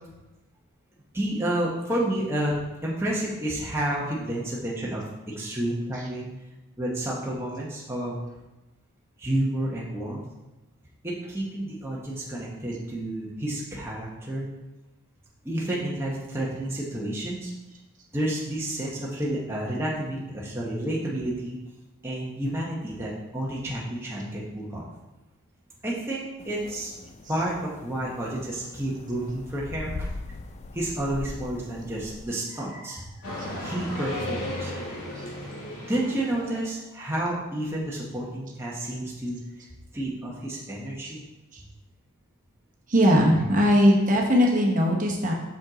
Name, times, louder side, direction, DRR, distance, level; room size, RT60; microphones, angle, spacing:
voice 1, 1.1-6.3 6.8-8.2 9.2-10.2 11.0-14.5 15.4-17.5 18.1-21.6 22.0-24.8 25.8-26.9 27.3-30.1 30.7-34.7 35.8-39.4 39.9-41.2, right 1 dB, 10° right, -5 dB, 0.8 m, -30 dB
sound 1, 26.4-32.2, left 3 dB, 30° left, 0.3 m, -41 dB
sound 2, 33.2-36.6, left 1 dB, 80° left, 2.1 m, -34 dB
voice 2, 42.9-45.3, equal, 35° right, -1 dB, 0.9 m, -20 dB
6.1 x 5.2 x 3.9 m, 1.0 s
head